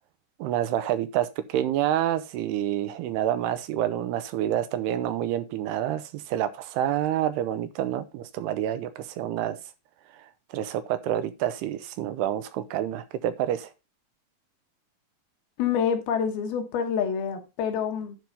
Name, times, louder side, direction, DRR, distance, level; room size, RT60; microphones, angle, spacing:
voice 1, 0.4-9.6 10.2-10.3 10.5-13.7, right 11 dB, 80° right, 2.6 m, -28 dB
voice 2, 15.6-18.2, left 7 dB, 70° left, 2.9 m, -27 dB
10.5 x 4.6 x 5.3 m
omnidirectional pair, 4.9 m